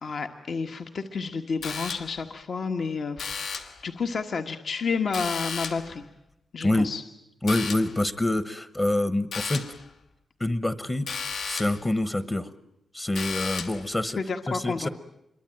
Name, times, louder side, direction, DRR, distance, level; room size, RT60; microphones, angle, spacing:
voice 1, 0.0-6.0 6.5-7.0 14.2-14.9, left 5 dB, 55° left, 6 dB, 1.4 m, -31 dB
sound 1, 1.6-2.3 3.2-3.8 5.1-6.0 7.5-8.0 9.3-9.8 11.1-11.9 13.2-13.9, left 5 dB, 80° left, 2.9 m, -34 dB
voice 2, 7.4-9.6 10.4-11.1 11.4-12.5 12.9-14.2 14.5-14.9, left 1 dB, 15° left, 13 dB, 1.0 m, -26 dB
27.5 x 23.0 x 9.0 m, 0.82 s
wide cardioid pair, 160°, 0 cm